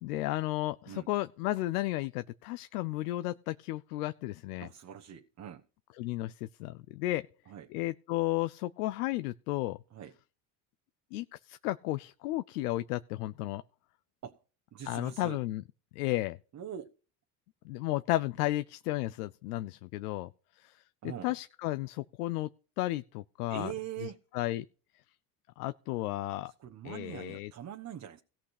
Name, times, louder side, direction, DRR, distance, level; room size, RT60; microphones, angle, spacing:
voice 1, 0.0-4.7 6.0-7.2 7.7-9.8 11.1-13.6 14.8-15.6 16.0-16.4 17.6-20.3 20.6-20.8 21.2-22.5 22.8-23.7 24.0-24.7 25.6-26.5 26.8-27.5, left 17 dB, 90° left, 0.6 m, -33 dB
voice 2, 4.6-5.6 7.5-7.7 9.9-10.1 14.2-14.4 14.7-15.4 16.5-16.9 21.0-21.3 23.5-24.2 26.6-28.2, right 9 dB, 40° right, 1.2 m, -42 dB
17.5 x 5.9 x 4.9 m
supercardioid pair, 80°, 44 cm